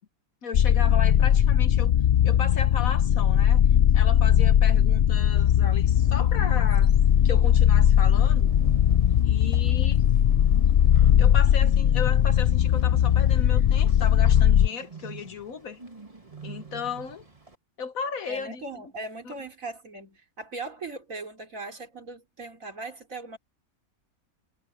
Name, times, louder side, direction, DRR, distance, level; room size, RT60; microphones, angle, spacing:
voice 1, 0.4-1.9 2.2-3.6 3.9-6.9 7.2-8.5 9.2-10.1 11.2-15.8 16.4-17.3 17.8-18.8 19.2-19.3, left 6 dB, 65° left, 1.5 m, -35 dB
sound 1, 0.5-14.7, left 10 dB, 85° left, 0.4 m, -19 dB
Bird, 5.4-17.6, right 5 dB, 25° right, 2.1 m, -45 dB
voice 2, 18.3-23.4, right 2 dB, 60° right, 3.9 m, -39 dB
omnidirectional pair, 1.6 m